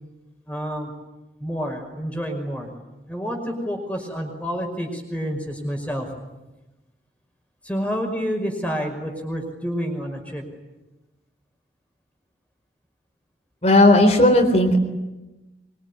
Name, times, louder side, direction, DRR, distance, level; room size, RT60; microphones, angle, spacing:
voice 1, 0.5-0.9 1.4-2.7 3.1-6.1 7.6-10.4, equal, 10° left, 2 dB, 5.5 m, -28 dB
voice 2, 13.6-14.8, left 1 dB, 35° left, 4 dB, 3.9 m, -15 dB
24.5 x 24.0 x 10.0 m, 1.1 s
head